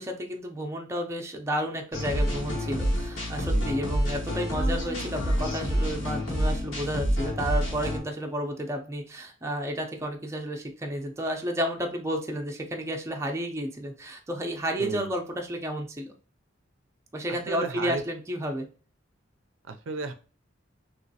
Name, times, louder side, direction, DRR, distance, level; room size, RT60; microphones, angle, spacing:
voice 1, 0.0-16.1 17.1-18.7, equal, 15° right, 2 dB, 0.5 m, -31 dB
sound 1, 1.9-8.0, equal, 90° left, 1.4 m, -28 dB
voice 2, 17.5-18.0 19.7-20.1, right 4 dB, 75° right, 8 dB, 0.4 m, -33 dB
3.1 x 3.0 x 2.7 m, 0.37 s
head